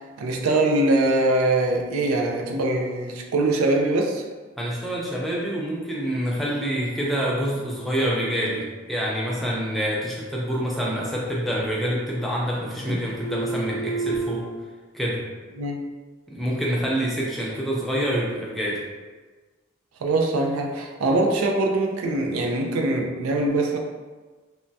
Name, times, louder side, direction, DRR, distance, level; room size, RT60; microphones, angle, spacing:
voice 1, 0.2-4.2 15.6-15.8 20.0-23.8, right 2 dB, 85° right, 2 dB, 0.4 m, -22 dB
voice 2, 4.6-14.5 14.9-15.2 16.3-18.8, equal, ahead, -4 dB, 0.3 m, -26 dB
sound 1, 11.8-12.6 12.8-14.4, right 3 dB, 45° right, 0.7 m, -32 dB
3.3 x 2.1 x 2.6 m, 1.3 s
head